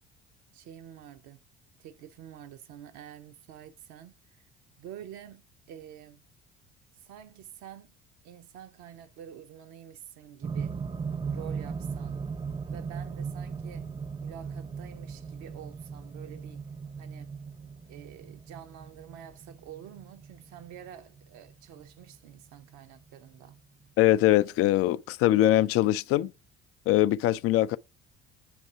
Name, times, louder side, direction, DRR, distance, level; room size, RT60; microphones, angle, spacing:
voice 1, 0.5-1.4 1.8-4.5 4.8-6.2 7.0-7.9 8.2-10.8 11.3-12.2 12.7-13.9 14.2-16.6 17.0-17.3 17.9-23.6, right 10 dB, 60° right, 0.8 m, -48 dB
sound 1, 10.4-22.6 23.5-23.6, right 5 dB, 15° right, 0.4 m, -38 dB
voice 2, 24.0-26.3 26.9-27.8, left 14 dB, 50° left, 0.4 m, -22 dB
6.5 x 2.7 x 5.4 m
hypercardioid pair, 55°, 31 cm